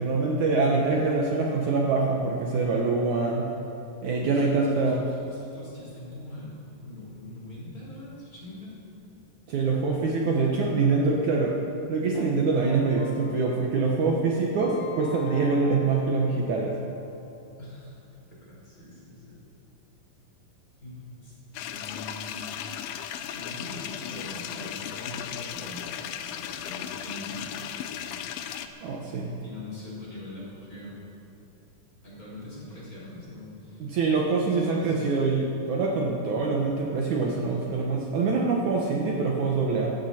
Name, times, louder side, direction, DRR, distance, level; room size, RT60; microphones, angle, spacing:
voice 1, 0.0-3.5 4.0-5.0 9.5-11.5 11.9-16.7 28.8-29.4 33.8-39.9, right 4 dB, 65° right, -2 dB, 2.3 m, -25 dB
voice 2, 4.3-8.8 17.6-17.9 18.3-19.4 20.8-23.0 23.3-27.7 28.0-28.3 29.4-31.0 32.0-33.9 34.5-35.4, left 2 dB, 25° left, -7 dB, 4.8 m, -43 dB
Keyboard (musical), 12.2-17.1, left 3 dB, 70° left, 3.3 m, -42 dB
sound 1, 21.5-28.7, left 10 dB, 90° left, 2.6 m, -36 dB
17.0 x 14.5 x 4.3 m, 2.7 s
omnidirectional pair, 4.1 m